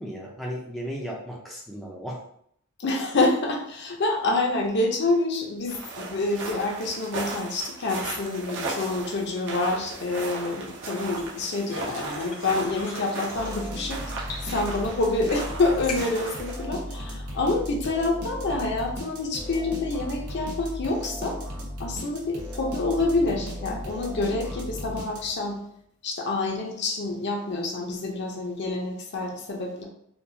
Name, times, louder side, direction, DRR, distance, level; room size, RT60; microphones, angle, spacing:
voice 1, 0.0-2.2, equal, ahead, -4 dB, 0.5 m, -35 dB
voice 2, 2.8-14.0 14.4-21.4 21.8-25.6 26.0-29.8, left 2 dB, 50° left, 1 dB, 0.7 m, -27 dB
sound 1, 5.7-16.7, right 3 dB, 55° right, 0.8 m, -36 dB
sound 2, 9.0-17.5, left 3 dB, 80° left, 1.1 m, -45 dB
sound 3, 13.3-25.6, equal, 80° right, 0.9 m, -36 dB
4.4 x 2.3 x 2.7 m, 0.70 s
head